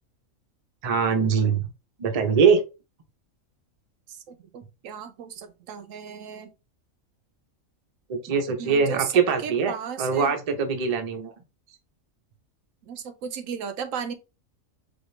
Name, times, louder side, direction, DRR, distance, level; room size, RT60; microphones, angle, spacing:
voice 1, 0.8-1.7 2.0-2.6 8.1-9.7 10.0-11.3, right 6 dB, 40° right, 0.5 m, -22 dB
voice 2, 4.1-6.5 8.6-9.1 9.4-10.3 12.8-14.1, right 7 dB, 80° right, 1.0 m, -35 dB
4.3 x 2.6 x 3.1 m
omnidirectional pair, 1.4 m